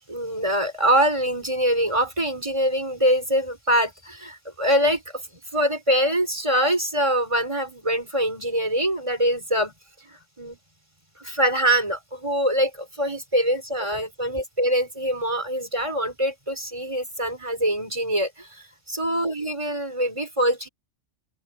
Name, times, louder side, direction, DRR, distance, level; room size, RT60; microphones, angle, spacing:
voice 1, 0.1-5.2 5.5-9.7 10.0-10.6 11.2-20.7, equal, 25° right, 5.4 m, -24 dB
open air
omnidirectional pair, 1.4 m